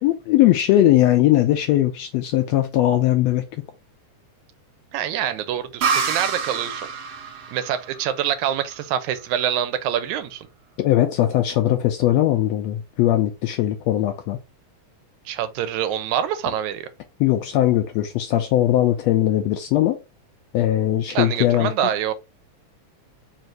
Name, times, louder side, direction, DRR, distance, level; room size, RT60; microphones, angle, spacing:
voice 1, 0.0-3.5 10.8-14.4 17.2-20.0 20.5-21.7, left 13 dB, 80° left, 1.5 m, -19 dB
voice 2, 4.9-6.9 7.5-10.5 15.3-16.9 21.1-22.1, right 10 dB, 85° right, 2.0 m, -25 dB
sound 1, 5.8-9.3, right 5 dB, 70° right, 1.3 m, -28 dB
4.7 x 2.6 x 4.4 m
omnidirectional pair, 3.4 m